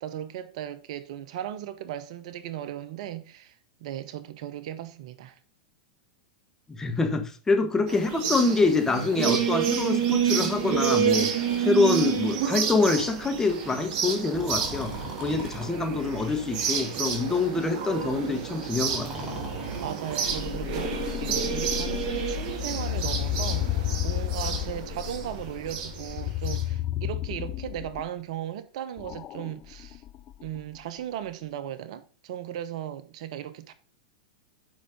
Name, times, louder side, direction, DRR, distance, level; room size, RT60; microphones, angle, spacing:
voice 1, 0.0-3.5 3.8-5.4 19.8-30.0 30.4-33.7, right 11 dB, 60° right, 0.9 m, -37 dB
voice 2, 6.7-11.3 11.6-14.9 15.2-19.3, left 3 dB, 15° left, 1.5 m, -25 dB
sound 1, 7.9-26.6, right 8 dB, 45° right, 2.2 m, -29 dB
Breathing, 14.3-15.7 16.5-17.1 18.8-20.5, equal, 20° right, 2.9 m, -40 dB
sound 2, 20.3-28.1 29.0-30.8, left 14 dB, 35° left, 0.4 m, -32 dB
8.4 x 5.6 x 5.2 m
hypercardioid pair, 105°, 4 cm